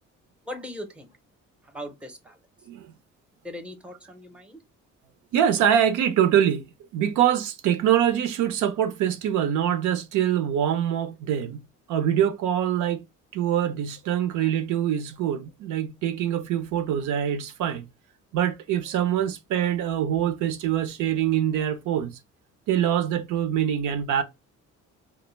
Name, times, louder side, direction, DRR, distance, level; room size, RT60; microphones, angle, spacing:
voice 1, 0.5-1.1 1.7-2.4 3.4-4.6, left 1 dB, 5° right, 0.6 m, -39 dB
voice 2, 5.3-6.7 6.9-11.6 11.9-13.0 13.3-17.8 18.3-22.2 22.7-24.2, right 10 dB, 80° right, 0.5 m, -24 dB
2.1 x 2.1 x 3.1 m
cardioid pair, 90°, 30 cm